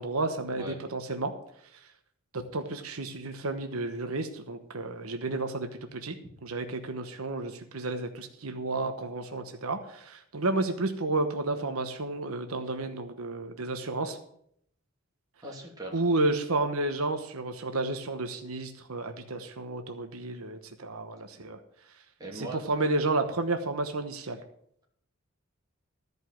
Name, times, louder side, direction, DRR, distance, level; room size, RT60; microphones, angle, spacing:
voice 1, 0.0-1.3 2.3-6.1 6.4-14.2 15.9-21.6 22.3-24.4, right 2 dB, 85° right, 6 dB, 1.1 m, -31 dB
voice 2, 15.4-16.0 22.2-22.8, right 2 dB, 20° right, -2 dB, 2.8 m, -40 dB
14.0 x 5.4 x 7.7 m, 0.69 s
head